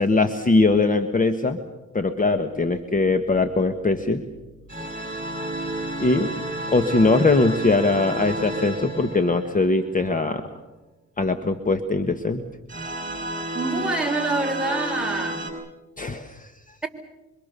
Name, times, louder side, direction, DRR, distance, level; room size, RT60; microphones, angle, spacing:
voice 1, 0.0-1.6 1.9-4.2 6.0-6.3 6.7-10.4 11.2-12.4 16.0-16.5, left 3 dB, 25° left, 8 dB, 1.6 m, -21 dB
sound 1, 4.7-10.1 12.7-15.5, right 1 dB, 25° right, 7.3 m, -31 dB
voice 2, 13.5-15.5, right 2 dB, 5° right, 2 dB, 4.1 m, -26 dB
26.0 x 25.0 x 6.9 m, 1.1 s
cardioid pair, 90°, 30 cm